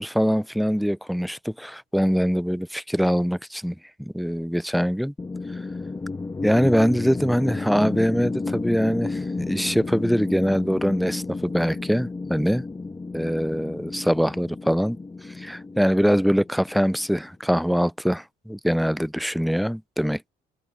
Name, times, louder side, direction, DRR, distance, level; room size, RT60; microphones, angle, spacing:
voice 1, 0.0-5.1 5.5-5.6 6.4-12.6 13.1-20.3, equal, ahead, 0.3 m, -23 dB
sound 1, 5.2-17.3, left 3 dB, 20° left, 1.3 m, -32 dB
cardioid pair, 110°, 17 cm